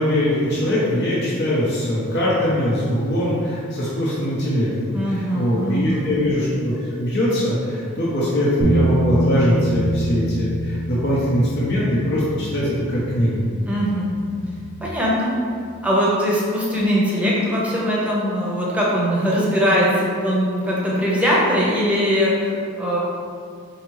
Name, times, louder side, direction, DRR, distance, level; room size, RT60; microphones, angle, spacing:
voice 1, 0.0-13.4, equal, 60° left, -7 dB, 0.7 m, -21 dB
voice 2, 4.9-6.2 13.7-14.1 14.8-15.3 15.8-23.0, equal, 5° right, -6 dB, 0.7 m, -21 dB
sound 1, 8.6-14.9, right 1 dB, 65° right, 0.4 m, -26 dB
4.4 x 2.8 x 3.0 m, 2.2 s
head